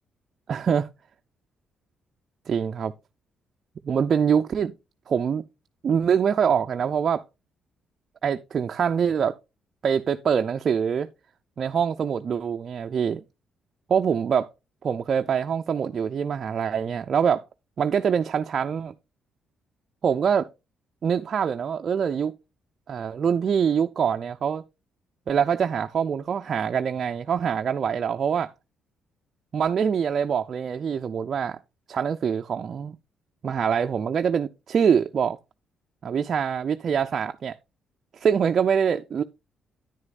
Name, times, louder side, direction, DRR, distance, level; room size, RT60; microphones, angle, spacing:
voice 1, 0.5-0.8 2.5-2.9 3.8-4.7 5.1-5.4 5.8-7.2 8.2-9.4 9.8-11.1 11.6-13.2 13.9-14.5 14.8-17.5 17.8-18.9 20.0-20.5 21.0-22.3 22.9-24.6 25.3-28.5 29.5-31.6 31.9-33.0 33.4-35.4 36.0-37.6 38.1-39.2, right 7 dB, 50° right, 0.4 m, -24 dB
9.9 x 9.7 x 2.4 m
cardioid pair, 90°, 0 cm